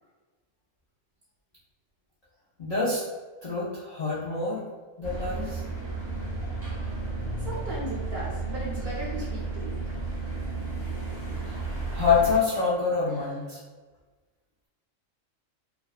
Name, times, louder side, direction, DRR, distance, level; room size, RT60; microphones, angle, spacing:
voice 1, 2.6-3.0 3.4-4.6 5.0-5.6 11.6-13.6, left 5 dB, 65° left, -9 dB, 0.3 m, -26 dB
sound 1, 5.0-12.4, right 3 dB, 15° right, 0.6 m, -33 dB
voice 2, 7.4-9.7 13.1-13.4, right 1 dB, 60° right, -5 dB, 0.6 m, -37 dB
2.5 x 2.2 x 2.3 m, 1.3 s
omnidirectional pair, 1.4 m